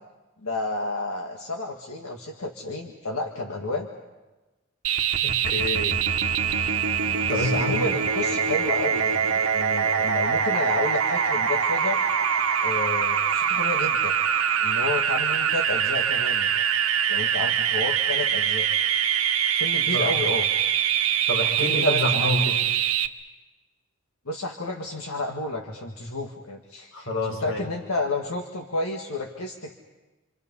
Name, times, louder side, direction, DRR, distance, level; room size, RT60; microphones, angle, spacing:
voice 1, 0.4-3.9 7.3-12.0 12.6-14.1 14.6-16.6 17.1-18.7 19.6-20.4 21.6-22.6 24.3-29.7, left 2 dB, 90° left, 1 dB, 1.8 m, -31 dB
sound 1, 4.8-23.1, right 8 dB, 80° right, 1.2 m, -24 dB
voice 2, 5.2-6.0 7.3-7.9 8.3-8.4 19.9-20.2 21.3-22.6 26.9-27.7, left 1 dB, 70° left, 1 dB, 4.7 m, -27 dB
29.0 x 25.5 x 5.5 m, 1.1 s
head